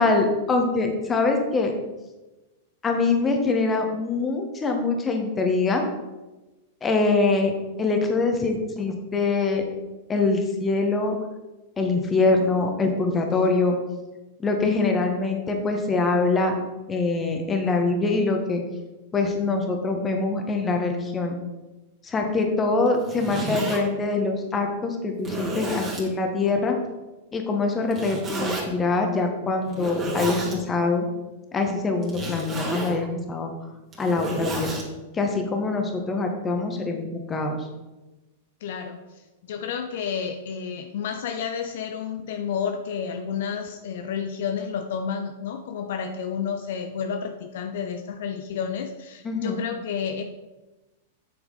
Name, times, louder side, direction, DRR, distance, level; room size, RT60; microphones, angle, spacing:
voice 1, 0.0-1.7 2.8-5.8 6.8-7.5 7.8-9.6 10.1-11.2 11.8-13.7 14.4-16.5 16.9-18.6 19.1-21.3 22.0-26.8 27.3-31.1 31.5-33.5 34.0-34.7 35.1-37.6 49.2-49.6, left 3 dB, 20° left, 3 dB, 1.6 m, -24 dB
Zipper (clothing), 22.9-23.8 24.5-24.6 25.2-26.1 27.9-28.6 29.7-30.6 32.0-33.0 33.8-34.9, right 2 dB, 25° right, 2.8 m, -31 dB
voice 2, 38.6-50.2, left 7 dB, 60° left, 5 dB, 0.7 m, -31 dB
8.5 x 6.9 x 4.2 m, 1.1 s
figure-of-eight pair, 95°, 0 cm